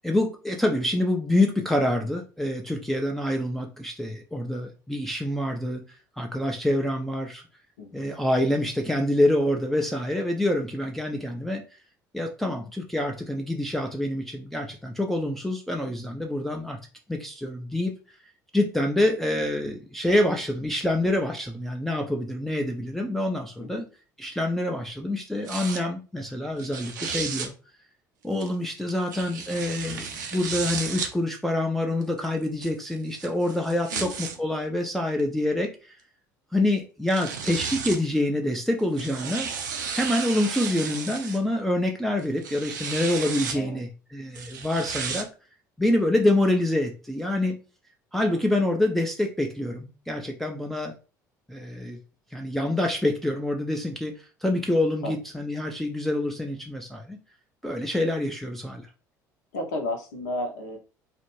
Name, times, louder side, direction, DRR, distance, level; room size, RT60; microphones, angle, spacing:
voice 1, 0.0-5.8 6.2-7.4 7.9-11.6 12.1-16.8 17.1-17.9 18.5-23.8 24.2-27.5 28.2-35.9 36.5-39.7 39.9-45.3 45.8-47.5 48.1-50.9 51.5-52.0 52.3-57.2 57.6-58.8, left 1 dB, ahead, 1 dB, 0.4 m, -26 dB
voice 2, 7.8-8.1 23.6-23.9 33.9-34.4 43.5-43.8 48.3-48.7 55.0-55.1 59.5-60.8, left 1 dB, 70° left, 3 dB, 0.7 m, -34 dB
sound 1, 25.5-25.8 26.6-27.5 28.4-31.1 32.0-34.4 35.2-35.3 36.7-36.8 37.1-38.0 38.8-41.4 42.2-43.6 44.3-45.2, right 6 dB, 75° right, 0.4 m, -33 dB
2.4 x 2.1 x 3.0 m, 0.34 s
figure-of-eight pair, 60°, 10 cm